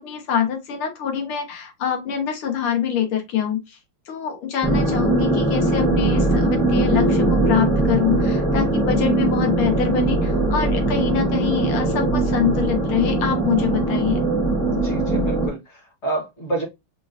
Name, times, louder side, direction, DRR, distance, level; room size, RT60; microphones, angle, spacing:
voice 1, 0.0-3.8 4.1-14.2, left 8 dB, 80° left, 2.1 m, -25 dB
sound 1, 4.6-15.5, right 2 dB, 5° left, 0.7 m, -20 dB
voice 2, 14.6-16.6, right 2 dB, 35° left, 1.5 m, -29 dB
5.3 x 2.7 x 2.5 m
omnidirectional pair, 2.4 m